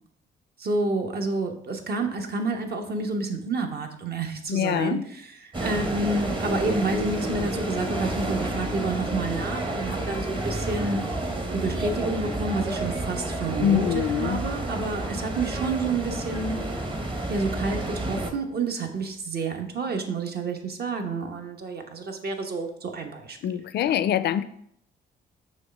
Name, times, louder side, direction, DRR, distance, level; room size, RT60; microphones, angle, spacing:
voice 1, 0.6-11.0 11.5-16.6 17.3-23.6 23.8-23.9, right 3 dB, 50° right, 4 dB, 1.1 m, -29 dB
voice 2, 4.5-5.0 13.6-14.4 23.4-24.4, left 10 dB, 55° left, 14 dB, 0.4 m, -24 dB
sound 1, 5.5-18.3, right 1 dB, 25° right, 1.0 m, -30 dB
6.4 x 3.2 x 5.3 m, 0.70 s
cardioid pair, 90°, 20 cm